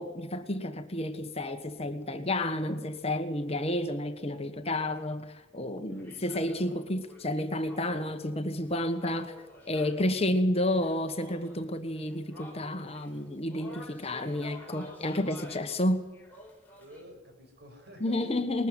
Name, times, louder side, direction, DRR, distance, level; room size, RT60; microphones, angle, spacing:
voice 1, 0.0-9.3 9.7-16.1 18.0-18.7, left 1 dB, 30° left, 1.5 m, -31 dB
voice 2, 5.7-6.2 10.0-10.3 16.7-18.7, equal, 55° right, 6.3 m, -51 dB
sound 1, 6.0-10.1 10.4-10.5 10.7-17.0, left 2 dB, 10° left, 5.0 m, -51 dB
21.0 x 14.0 x 9.8 m
head